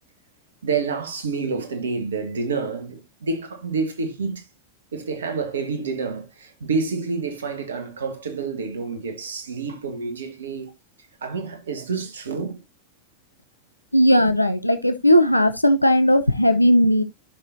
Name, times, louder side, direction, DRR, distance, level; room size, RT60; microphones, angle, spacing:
voice 1, 0.6-4.5 4.9-10.7 11.2-12.6, right 4 dB, 65° right, 1.8 m, -28 dB
voice 2, 13.9-17.0, equal, 85° left, 0.6 m, -17 dB
12.5 x 6.0 x 2.7 m
figure-of-eight pair, 90°, 0 cm